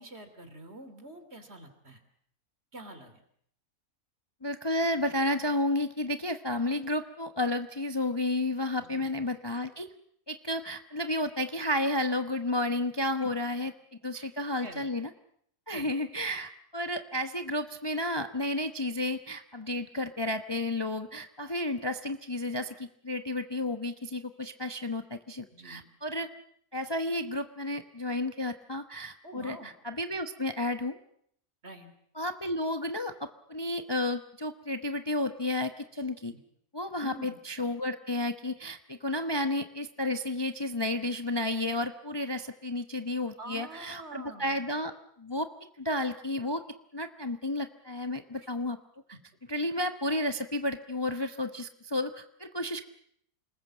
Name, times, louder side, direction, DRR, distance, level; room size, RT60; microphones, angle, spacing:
voice 1, 0.0-2.0 2.7-3.2 8.8-9.1 13.2-13.3 14.1-14.3 14.6-14.9 15.7-15.9 25.5-25.8 29.2-29.7 31.6-31.9 36.3-36.4 37.0-37.4 43.4-44.6 48.4-48.5, right 1 dB, 45° right, 9 dB, 3.1 m, -46 dB
voice 2, 4.4-9.9 10.3-13.7 14.0-15.1 15.7-26.3 26.7-31.0 32.1-36.3 36.7-44.9 45.2-45.5 45.8-46.6 46.9-48.8 49.5-52.8, left 1 dB, 20° left, 8 dB, 0.9 m, -32 dB
28.5 x 20.0 x 7.5 m, 0.68 s
omnidirectional pair, 1.5 m